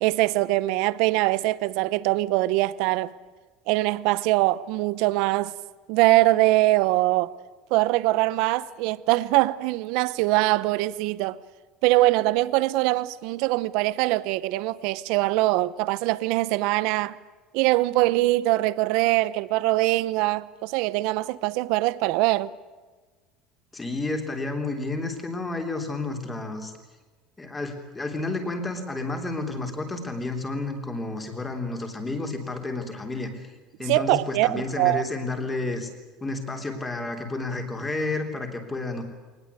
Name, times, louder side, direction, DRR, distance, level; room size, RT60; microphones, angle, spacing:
voice 1, 0.0-3.1 3.7-5.5 5.9-7.3 7.7-11.4 11.8-17.2 17.5-22.5 33.9-35.0, right 18 dB, 60° right, 0.8 m, -23 dB
voice 2, 23.7-26.7 27.4-33.5 33.8-35.9 36.2-39.0, left 2 dB, 10° left, 3.3 m, -31 dB
23.0 x 20.0 x 8.3 m
cardioid pair, 165°, 0 cm